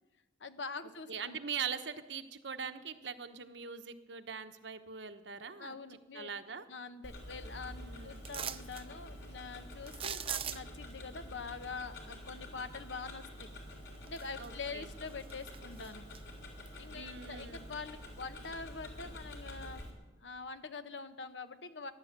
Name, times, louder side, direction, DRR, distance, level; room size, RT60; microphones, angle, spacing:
voice 1, 0.4-1.4 5.6-6.3 6.7-13.5 14.1-16.0 16.8-19.8 20.2-21.9, left 4 dB, 85° left, 11 dB, 1.0 m, -44 dB
voice 2, 1.1-5.8 6.1-6.7 7.7-8.2 14.4-14.9 16.9-17.7, right 6 dB, 80° right, 9 dB, 1.1 m, -42 dB
Tick-tock, 7.0-19.9, left 1 dB, 65° left, 3.4 m, -48 dB
sound 1, 8.2-8.9 9.9-10.9 13.4-13.5 14.0-14.7 15.1-16.2 16.7-16.8, right 9 dB, 30° right, 0.5 m, -40 dB
15.0 x 11.5 x 8.2 m, 1.1 s
head